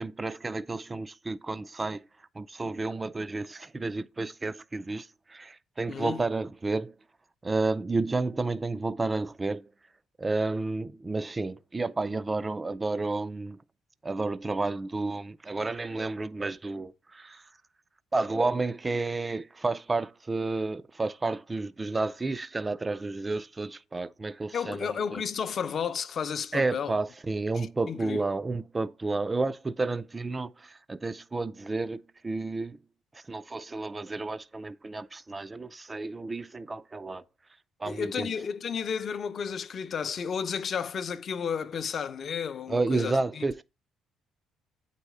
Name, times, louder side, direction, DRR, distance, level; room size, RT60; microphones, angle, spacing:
voice 1, 0.0-2.0 2.4-6.9 7.4-9.7 10.2-13.6 14.0-17.4 18.1-25.2 26.5-32.8 33.1-37.2 37.8-38.3 42.7-43.6, right 3 dB, 15° right, 0.4 m, -31 dB
voice 2, 5.9-6.2 24.5-26.9 27.9-28.2 37.9-43.4, left 7 dB, 40° left, 0.6 m, -32 dB
8.9 x 4.1 x 4.8 m
cardioid pair, 145°, 0 cm